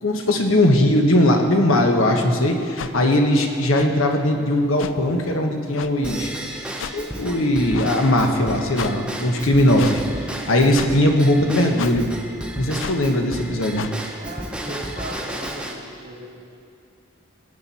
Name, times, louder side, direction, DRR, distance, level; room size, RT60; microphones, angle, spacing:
voice 1, 0.0-6.3 6.9-12.1 12.6-13.9, left 1 dB, 85° left, 3 dB, 1.2 m, -19 dB
sound 1, 2.8-2.9 3.7-3.9 4.8-4.9 5.7-5.9 6.8-6.9 7.7-7.9 8.7-8.9 9.8-10.0 10.7-10.9 11.8-12.0 12.8-13.0 13.7-13.9, left 7 dB, 70° left, 0.4 m, -31 dB
Drum kit / Drum / Bell, 6.0-15.7, right 1 dB, 5° right, 0.8 m, -33 dB
voice 2, 14.1-16.3, right 1 dB, 40° right, -5 dB, 2.8 m, -37 dB
18.5 x 8.8 x 4.3 m, 2.5 s
head